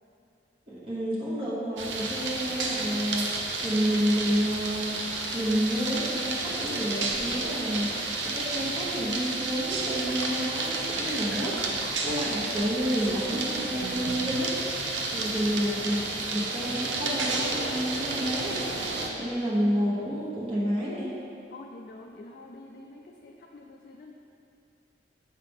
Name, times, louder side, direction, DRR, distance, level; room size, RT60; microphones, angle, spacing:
voice 1, 0.7-3.3 3.6-5.0 5.3-7.9 8.3-11.6 12.0-14.6 15.1-18.6 19.2-21.1, equal, 30° right, -9 dB, 1.1 m, -29 dB
sound 1, 1.8-19.1, right 3 dB, 90° right, 0.8 m, -31 dB
sound 2, 10.1-14.5, right 5 dB, 70° right, 0.3 m, -40 dB
voice 2, 21.5-24.1, left 2 dB, 50° left, -1 dB, 0.4 m, -47 dB
7.2 x 5.7 x 3.5 m, 2.7 s
head